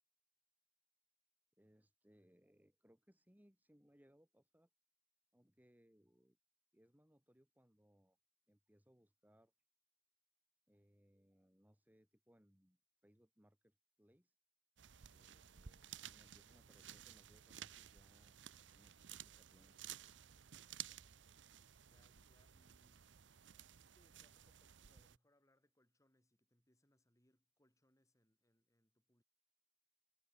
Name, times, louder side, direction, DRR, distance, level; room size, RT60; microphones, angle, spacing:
voice 1, 1.6-4.7 5.3-6.4 6.7-8.2 8.5-9.5 10.7-14.4 15.1-18.4 18.7-19.8, equal, 10° right, 2.3 m, -71 dB
sound 1, 14.8-25.2, right 10 dB, 85° right, 0.8 m, -56 dB
voice 2, 21.8-23.1 23.7-29.2, left 1 dB, 20° left, 7.2 m, -78 dB
head